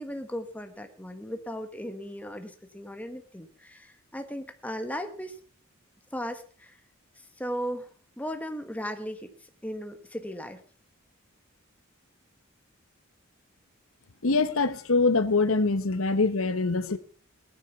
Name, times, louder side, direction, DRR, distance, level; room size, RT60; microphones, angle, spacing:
voice 1, 0.0-5.4 6.1-6.8 7.2-10.6, equal, 5° left, 1.4 m, -37 dB
voice 2, 14.2-17.0, left 3 dB, 75° left, 1.1 m, -24 dB
18.5 x 10.0 x 5.9 m
head